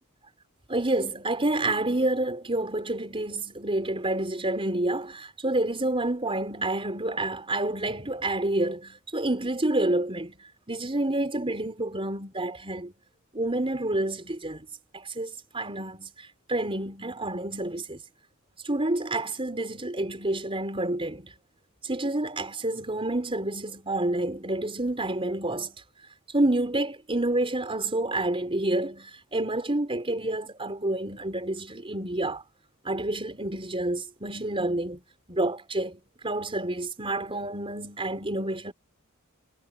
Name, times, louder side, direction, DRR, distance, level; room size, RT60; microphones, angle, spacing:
voice 1, 0.7-12.9 13.3-14.7 14.9-18.0 18.6-21.3 21.8-25.8 26.3-32.4 32.8-35.0 35.3-38.7, right 1 dB, 25° right, 4.3 m, -29 dB
head